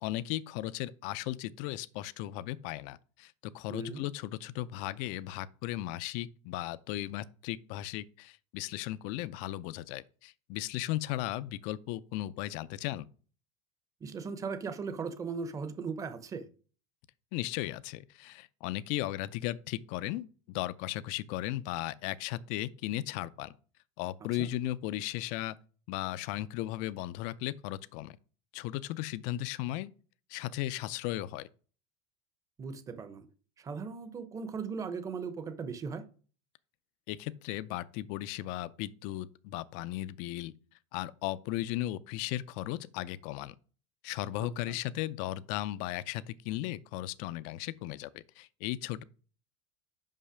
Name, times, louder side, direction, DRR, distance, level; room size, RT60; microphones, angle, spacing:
voice 1, 0.0-13.0 17.3-23.5 24.0-25.5 25.9-28.2 28.5-29.9 30.3-31.5 37.1-40.5 40.9-43.5 44.0-49.0, left 15 dB, 60° left, 0.5 m, -36 dB
voice 2, 3.7-4.0 14.0-16.5 24.4-24.5 32.6-33.2 33.6-36.0 44.4-44.8, right 5 dB, 25° right, 0.8 m, -38 dB
5.5 x 5.5 x 5.0 m
supercardioid pair, 135°, 14 cm